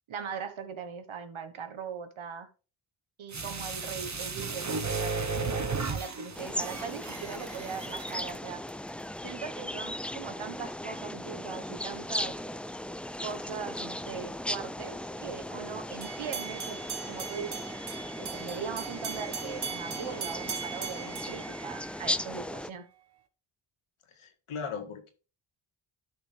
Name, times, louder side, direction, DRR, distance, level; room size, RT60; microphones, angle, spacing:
voice 1, 0.1-2.5 3.2-8.6 9.2-12.4 13.2-16.8 17.1-17.6 18.2-22.9, right 6 dB, 75° right, 9 dB, 1.4 m, -40 dB
sound 1, 3.3-8.4 8.7-8.8, right 4 dB, 35° right, 1.3 m, -34 dB
sound 2, 6.3-22.7, left 1 dB, 5° left, 0.3 m, -37 dB
cloche maternelle, 16.0-22.2, right 6 dB, 55° right, 1.4 m, -39 dB
voice 2, 24.1-25.1, left 6 dB, 90° left, 5 dB, 2.0 m, -38 dB
12.0 x 6.1 x 3.4 m, 0.34 s
cardioid pair, 80°, 49 cm